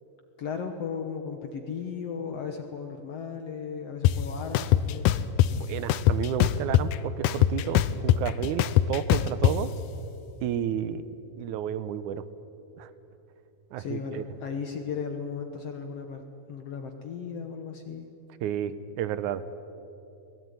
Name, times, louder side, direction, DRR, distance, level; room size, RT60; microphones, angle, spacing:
voice 1, 0.4-5.2 13.8-16.2 16.5-18.1, left 6 dB, 60° left, 5 dB, 1.9 m, -36 dB
sound 1, 4.0-4.1 4.5-5.5 5.9-7.0 7.2-9.5, left 13 dB, 80° left, 2.2 m, -21 dB
voice 2, 5.5-9.7 10.4-11.0 11.4-12.2 12.8-12.9 13.7-14.2 18.4-19.4, right 10 dB, 75° right, 14 dB, 2.2 m, -31 dB
22.5 x 19.5 x 9.6 m, 2.8 s
omnidirectional pair, 3.8 m